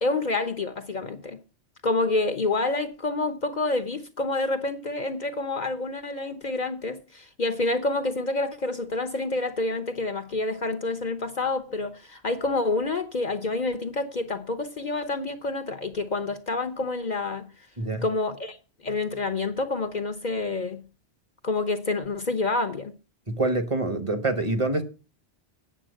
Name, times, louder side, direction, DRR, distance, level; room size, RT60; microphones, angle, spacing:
voice 1, 0.0-1.4 1.8-17.5 18.0-18.6 18.8-20.8 21.4-22.9, left 2 dB, 45° left, 0.9 m, -28 dB
voice 2, 23.3-24.9, right 2 dB, 30° right, 1.1 m, -26 dB
8.9 x 7.2 x 6.2 m
omnidirectional pair, 1.1 m